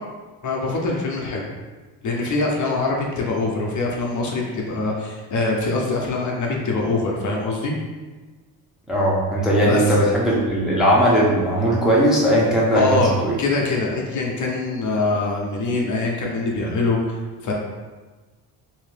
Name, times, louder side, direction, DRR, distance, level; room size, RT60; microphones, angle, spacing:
voice 1, 0.4-1.4 2.0-7.7 9.7-9.8 12.7-13.1 13.4-17.5, left 3 dB, 50° left, -1 dB, 0.6 m, -23 dB
voice 2, 8.9-13.4, equal, ahead, -6 dB, 0.6 m, -18 dB
2.7 x 2.7 x 3.3 m, 1.3 s
cardioid pair, 120°, 39 cm